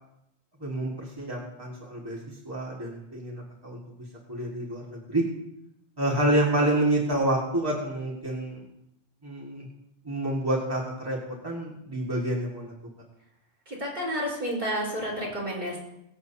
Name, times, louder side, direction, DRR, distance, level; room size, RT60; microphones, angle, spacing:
voice 1, 0.6-2.2 2.5-5.2 6.0-8.6 9.2-9.7 10.1-12.7, right 1 dB, 20° right, -4 dB, 1.9 m, -28 dB
voice 2, 13.7-15.8, equal, 55° right, -5 dB, 4.6 m, -30 dB
23.0 x 7.8 x 2.8 m, 0.84 s
omnidirectional pair, 1.1 m